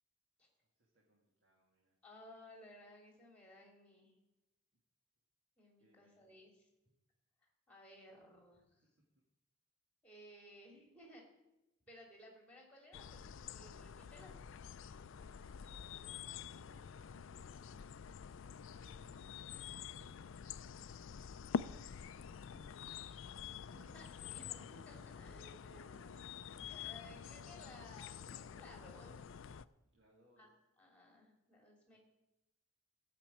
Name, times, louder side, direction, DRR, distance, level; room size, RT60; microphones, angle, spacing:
voice 1, 0.6-2.0 5.8-6.4 15.0-17.9 18.4-21.0 25.0-27.5 29.8-30.5 31.9-32.0, right 1 dB, 55° right, -3 dB, 2.0 m, -71 dB
voice 2, 2.0-4.1 5.6-6.7 7.7-8.9 10.0-11.2 11.9-14.4 22.5-22.6 23.7-26.2 26.7-29.3 30.4-30.5 30.8-32.0, left 1 dB, 5° left, 0 dB, 2.9 m, -59 dB
sound 1, 12.9-29.6, left 7 dB, 60° left, 0.4 m, -47 dB
14.5 x 6.0 x 8.6 m, 0.95 s
head